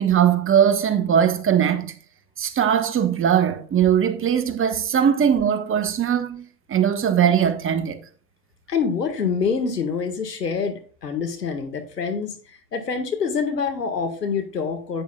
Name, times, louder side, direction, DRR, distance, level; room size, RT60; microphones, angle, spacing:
voice 1, 0.0-1.9 2.4-6.4 6.7-8.0, right 8 dB, 25° right, 1.3 m, -20 dB
voice 2, 8.7-12.3 12.7-15.0, left 5 dB, 90° left, 1.9 m, -26 dB
10.5 x 9.1 x 2.4 m
hypercardioid pair, 85°, 47 cm